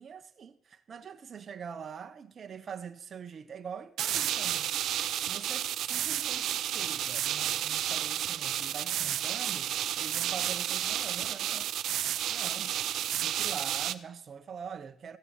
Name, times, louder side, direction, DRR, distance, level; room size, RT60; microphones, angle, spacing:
voice 1, 0.0-4.7 5.2-11.7 12.3-12.7 13.2-15.2, right 7 dB, 50° right, 0.9 m, -44 dB
sound 1, 4.0-13.9, right 11 dB, 80° right, 0.6 m, -31 dB
15.0 x 6.9 x 7.3 m
cardioid pair, 90°, 0 cm